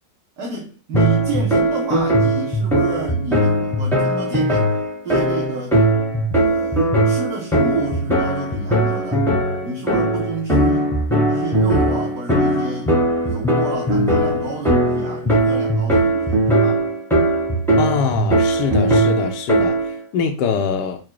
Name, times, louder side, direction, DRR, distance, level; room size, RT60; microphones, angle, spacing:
voice 1, 0.4-4.7 5.0-5.8 6.3-9.2 9.6-10.9 11.2-13.0 13.2-16.8, right 4 dB, 65° right, 1.3 m, -29 dB
sound 1, 0.9-20.0, right 1 dB, ahead, 0.8 m, -19 dB
voice 2, 17.8-21.0, left 6 dB, 75° left, 1.1 m, -23 dB
4.7 x 2.2 x 4.6 m
omnidirectional pair, 1.9 m